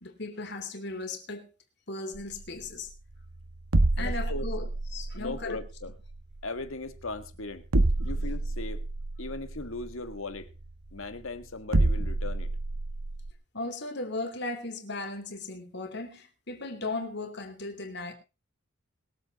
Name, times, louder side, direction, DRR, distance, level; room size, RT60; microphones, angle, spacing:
voice 1, 0.0-1.5 1.9-2.9 4.0-5.6 8.1-8.3 13.5-18.1, left 2 dB, 50° left, 3.0 m, -37 dB
sound 1, 2.1-13.3, right 2 dB, 85° right, 1.4 m, -29 dB
voice 2, 4.0-4.5 5.1-5.9 6.4-7.7 8.0-8.8 9.2-10.5 10.9-12.5, left 3 dB, 70° left, 1.8 m, -38 dB
21.5 x 8.2 x 4.1 m
head